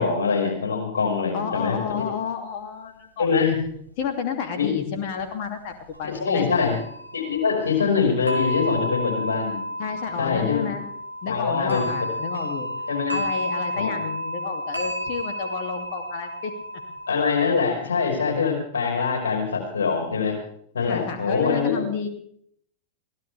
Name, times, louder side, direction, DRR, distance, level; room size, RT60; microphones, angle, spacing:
voice 1, 0.0-1.8 3.2-3.6 4.5-4.7 6.0-6.7 7.1-9.6 10.2-10.7 11.3-12.1 12.9-13.2 13.7-13.9 17.1-20.4 20.7-21.8, left 5 dB, 70° left, 2 dB, 5.3 m, -23 dB
voice 2, 1.3-3.5 4.0-6.5 9.8-10.8 11.2-12.7 13.1-16.5 20.8-22.1, left 6 dB, 50° left, 5 dB, 2.7 m, -31 dB
sound 1, 3.6-3.7 5.6-6.3 6.6-17.6, equal, 90° right, 1.7 m, -32 dB
22.5 x 17.0 x 3.5 m, 0.65 s
figure-of-eight pair, 90°, 0 cm